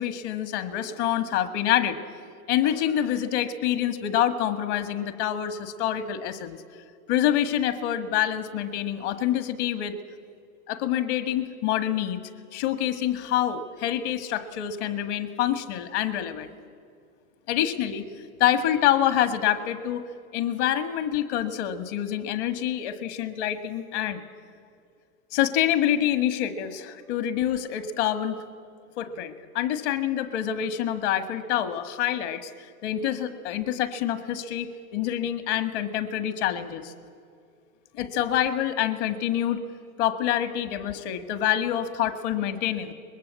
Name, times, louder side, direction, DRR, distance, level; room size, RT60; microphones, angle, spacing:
voice 1, 0.0-2.0 2.5-6.6 7.1-9.9 10.7-12.2 12.5-16.5 17.5-18.0 18.4-20.1 20.3-24.2 25.3-28.4 29.0-32.5 32.8-36.9 37.9-39.6 40.0-42.9, left 11 dB, 50° left, 10 dB, 1.8 m, -26 dB
23.5 x 21.0 x 8.3 m, 2.5 s
hypercardioid pair, 120°, 46 cm